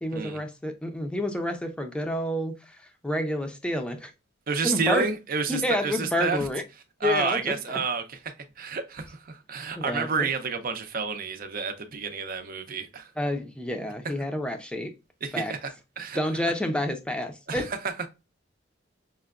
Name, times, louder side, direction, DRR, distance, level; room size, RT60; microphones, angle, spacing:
voice 1, 0.0-4.1 4.6-5.1 5.5-6.6 7.0-7.8 9.8-10.3 13.2-14.9 15.3-15.5 16.1-17.7, left 1 dB, 5° left, 0.5 m, -29 dB
voice 2, 4.5-6.4 7.0-8.2 8.6-13.1 15.2-16.2 17.5-17.8, right 5 dB, 45° right, 0.6 m, -30 dB
5.5 x 2.2 x 2.4 m
head